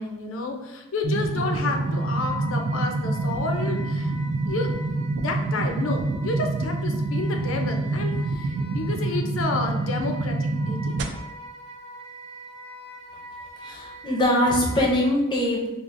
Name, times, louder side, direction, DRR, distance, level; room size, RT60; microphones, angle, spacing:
voice 1, 0.0-4.1 4.5-4.8 5.2-11.1, left 3 dB, 80° left, 4 dB, 0.5 m, -30 dB
sound 1, 1.0-11.0, right 2 dB, 55° right, 0.3 m, -27 dB
Wind instrument woodwind instrument, 1.3-15.1, equal, 30° right, 0.7 m, -43 dB
voice 2, 13.6-15.7, left 1 dB, 20° left, -1 dB, 0.5 m, -22 dB
4.6 x 2.4 x 2.5 m, 1.0 s
head